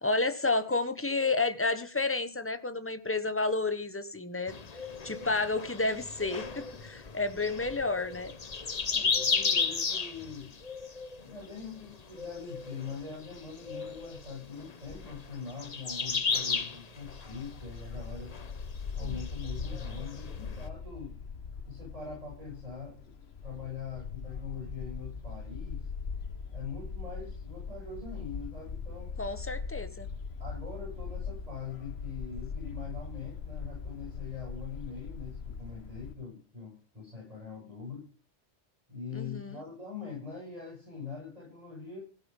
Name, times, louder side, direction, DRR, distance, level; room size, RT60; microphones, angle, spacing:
voice 1, 0.0-4.6 5.0-8.3 19.0-19.1 29.2-30.1 39.1-39.6, left 3 dB, 10° left, 10 dB, 1.2 m, -31 dB
sound 1, 4.5-20.7, left 5 dB, 40° left, 1.0 m, -35 dB
voice 2, 8.9-10.6 11.2-18.4 18.9-21.3 21.6-23.1 23.4-25.9 26.5-29.2 30.4-38.1 38.9-42.0, left 5 dB, 35° right, -4 dB, 7.5 m, -43 dB
Bark, 17.0-36.1, left 5 dB, 65° left, 1.5 m, -40 dB
16.5 x 8.3 x 5.5 m, 0.37 s
omnidirectional pair, 1.1 m